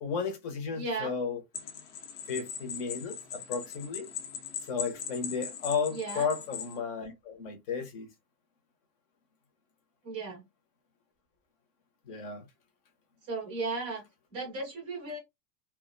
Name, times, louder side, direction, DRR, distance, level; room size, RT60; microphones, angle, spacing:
voice 1, 0.0-1.4 2.3-4.1 4.6-8.1 12.1-12.4, left 5 dB, 40° left, 0.7 m, -34 dB
voice 2, 0.8-1.1 5.9-6.3 10.0-10.4 13.3-14.1 14.3-15.2, right 3 dB, 15° right, 0.5 m, -35 dB
sound 1, 1.5-6.8, left 8 dB, 80° left, 0.9 m, -40 dB
2.4 x 2.1 x 2.5 m
supercardioid pair, 180°, 45 cm